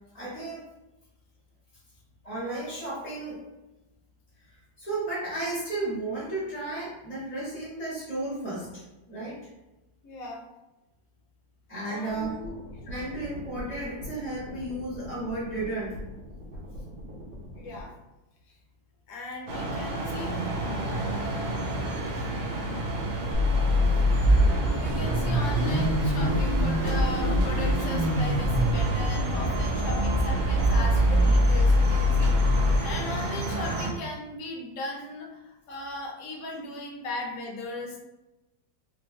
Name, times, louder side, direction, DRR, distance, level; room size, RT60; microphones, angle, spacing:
voice 1, 0.1-0.7 2.2-3.4 4.4-9.4 11.7-12.3 12.8-16.0 22.1-22.3, right 2 dB, 20° left, -10 dB, 1.1 m, -34 dB
voice 2, 10.0-10.4 11.8-12.5 17.6-17.9 19.1-20.4 21.2-21.4 24.5-38.0, left 2 dB, 60° left, 0 dB, 1.0 m, -38 dB
sound 1, 12.1-17.8, equal, 55° right, 1.5 m, -42 dB
sound 2, 19.5-33.9, right 2 dB, 90° right, 1.6 m, -31 dB
Car / Idling / Accelerating revving vroom, 23.3-32.8, equal, 70° right, 0.6 m, -23 dB
3.6 x 3.0 x 3.1 m, 1.0 s
omnidirectional pair, 2.1 m